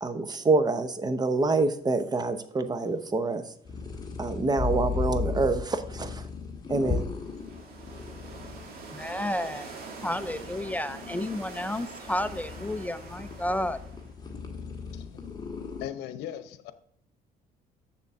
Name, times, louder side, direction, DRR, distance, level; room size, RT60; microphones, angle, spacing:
voice 1, 0.0-3.4 4.2-6.2 6.7-7.1, right 3 dB, 25° right, 11 dB, 0.8 m, -26 dB
sound 1, 3.6-15.8, left 5 dB, 25° left, 1.6 m, -36 dB
sound 2, 7.1-14.2, right 4 dB, 65° right, 2.3 m, -44 dB
voice 2, 8.9-9.7 10.0-13.8, left 1 dB, 10° left, 13 dB, 0.4 m, -31 dB
voice 3, 14.9-15.2 15.8-16.7, left 11 dB, 85° left, 12 dB, 0.8 m, -38 dB
7.1 x 6.9 x 3.6 m, 0.64 s
cardioid pair, 110°, 17 cm